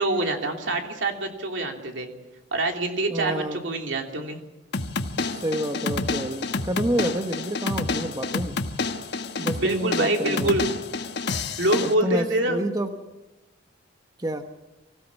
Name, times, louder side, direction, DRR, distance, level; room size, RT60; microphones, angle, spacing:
voice 1, 0.0-2.1 2.5-4.4 9.6-10.7 11.6-12.6, right 2 dB, 70° right, 3 dB, 3.1 m, -25 dB
voice 2, 3.1-3.6 5.2-8.6 9.4-10.5 11.8-12.9 14.2-14.4, right 1 dB, 20° right, 6 dB, 1.1 m, -29 dB
sound 1, 4.7-11.9, left 3 dB, 60° left, 1.3 m, -29 dB
24.0 x 17.0 x 7.2 m, 0.97 s
head